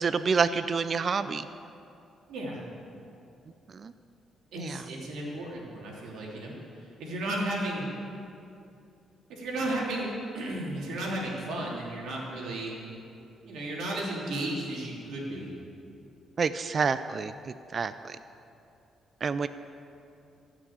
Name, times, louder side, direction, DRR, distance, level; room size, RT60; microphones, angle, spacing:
voice 1, 0.0-1.5 3.7-3.9 4.6-4.8 16.4-17.3 17.7-18.2 19.2-19.5, right 5 dB, 45° right, 12 dB, 0.4 m, -28 dB
voice 2, 2.3-2.6 4.5-6.5 7.0-7.9 9.3-10.1 10.3-12.8 13.4-15.5, right 1 dB, 80° right, -3 dB, 3.1 m, -34 dB
15.0 x 6.2 x 8.5 m, 2.7 s
cardioid pair, 85°, 0 cm